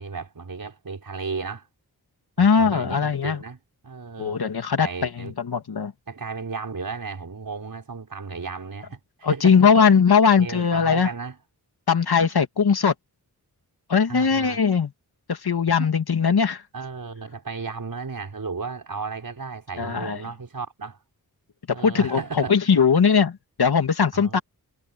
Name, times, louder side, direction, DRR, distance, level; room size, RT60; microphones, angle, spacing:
voice 1, 0.0-1.7 2.4-4.4 4.8-5.3 6.1-9.7 10.2-11.4 12.2-12.3 14.1-14.6 15.8-15.9 16.7-21.0 21.7-22.6 24.1-24.4, right 4 dB, 65° right, 5.9 m, -34 dB
voice 2, 2.4-3.4 4.2-5.9 9.2-11.1 11.9-12.9 13.9-14.9 15.3-16.6 19.8-20.2 21.8-22.2 22.5-24.4, left 6 dB, 80° left, 2.5 m, -20 dB
wide cardioid pair, 60°, 37 cm